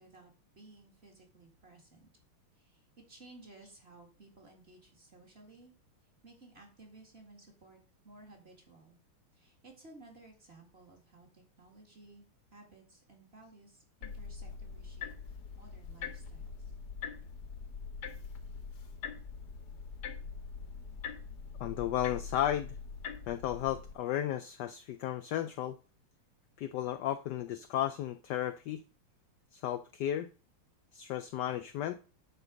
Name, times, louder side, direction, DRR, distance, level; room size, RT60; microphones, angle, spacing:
voice 1, 0.0-2.1 2.5-5.7 6.2-9.0 9.3-12.3 12.5-16.7, right 2 dB, 30° right, 2.2 m, -57 dB
sound 1, 14.0-23.9, left 5 dB, 55° left, 1.4 m, -43 dB
voice 2, 21.6-22.8 23.3-25.8 26.6-28.8 29.5-30.3 30.9-32.0, left 12 dB, 80° left, 0.9 m, -34 dB
8.4 x 4.6 x 6.3 m
omnidirectional pair, 2.3 m